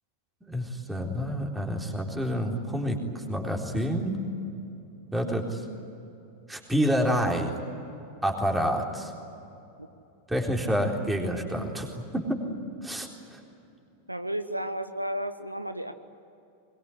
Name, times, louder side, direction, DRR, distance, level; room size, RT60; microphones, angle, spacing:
voice 1, 0.4-4.1 5.1-5.6 6.5-7.5 8.2-9.1 10.3-11.9 12.1-12.4 12.8-13.4, equal, 5° right, 1 dB, 4.0 m, -28 dB
voice 2, 14.1-15.9, equal, 85° right, 10 dB, 0.9 m, -32 dB
22.5 x 22.5 x 10.0 m, 2.8 s
figure-of-eight pair, 90°, 0 cm